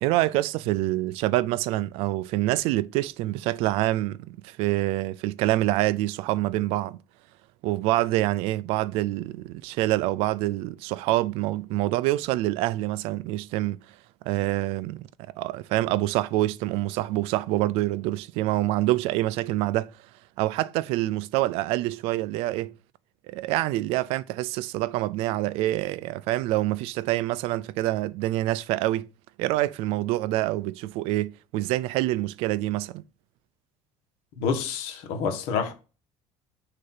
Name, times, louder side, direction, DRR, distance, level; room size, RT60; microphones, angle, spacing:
voice 1, 0.0-7.0 7.6-13.8 14.2-15.1 15.4-19.9 20.4-22.8 23.3-29.1 29.4-33.0, right 16 dB, 75° right, 0.4 m, -26 dB
voice 2, 34.4-35.7, left 6 dB, 80° left, 1.4 m, -28 dB
6.5 x 2.8 x 5.7 m
cardioid pair, 160°, 10 cm